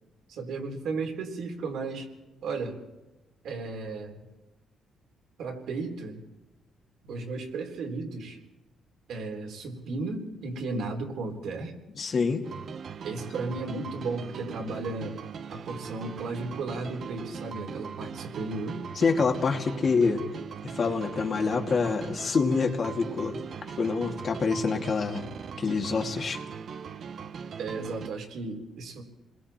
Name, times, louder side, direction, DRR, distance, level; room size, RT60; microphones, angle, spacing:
voice 1, 0.3-2.1 2.4-2.8 3.4-4.2 5.4-6.2 7.1-8.4 9.1-11.7 13.0-15.1 15.5-18.8 27.6-29.0, right 3 dB, 75° right, 1 dB, 4.0 m, -34 dB
voice 2, 12.0-12.5 19.0-20.2 20.6-23.4 23.8-25.3 25.6-26.4, left 4 dB, 45° left, 3 dB, 2.3 m, -26 dB
sound 1, 12.4-28.1, right 6 dB, 55° right, 0.9 m, -40 dB
28.0 x 21.5 x 4.4 m, 1.0 s
cardioid pair, 90°, 0 cm